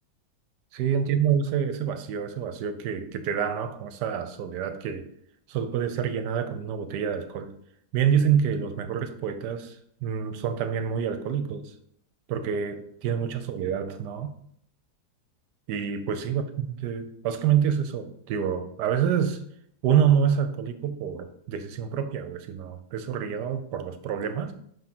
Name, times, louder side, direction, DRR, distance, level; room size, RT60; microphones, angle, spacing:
voice 1, 0.7-5.1 5.5-7.5 7.9-11.7 12.3-14.3 15.7-19.4 19.8-24.5, right 8 dB, 80° right, 1.2 m, -27 dB
5.4 x 3.6 x 5.9 m
omnidirectional pair, 1.8 m